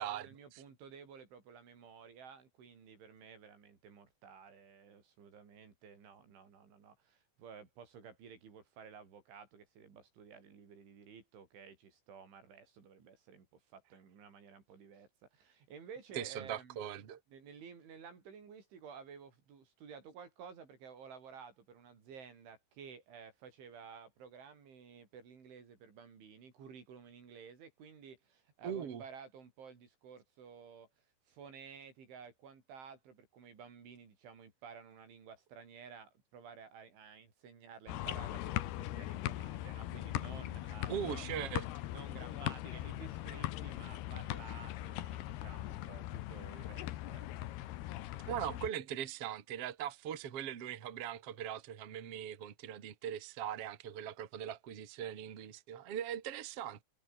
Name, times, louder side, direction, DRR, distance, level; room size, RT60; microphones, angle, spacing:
voice 1, 0.0-16.8 17.3-30.9 31.3-41.2 41.9-47.3, right 6 dB, 85° right, 7.8 m, -54 dB
voice 2, 16.1-17.2 28.6-29.0 40.9-41.7 48.3-56.8, right 10 dB, 40° right, 2.4 m, -40 dB
sound 1, 37.9-48.7, left 14 dB, 70° left, 2.9 m, -40 dB
omnidirectional pair, 5.3 m